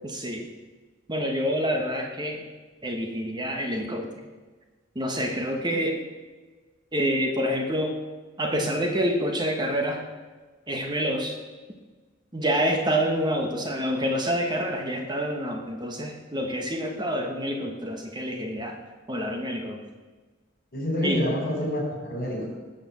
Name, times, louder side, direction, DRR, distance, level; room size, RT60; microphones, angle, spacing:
voice 1, 0.0-0.5 1.1-2.4 2.8-4.2 4.9-6.0 6.9-8.0 8.4-10.0 10.7-11.4 12.3-18.8 19.1-19.8 21.0-21.3, equal, 25° right, 3 dB, 1.2 m, -27 dB
voice 2, 20.7-22.5, left 1 dB, 50° left, 1 dB, 4.1 m, -27 dB
18.5 x 6.4 x 7.2 m, 1.3 s
head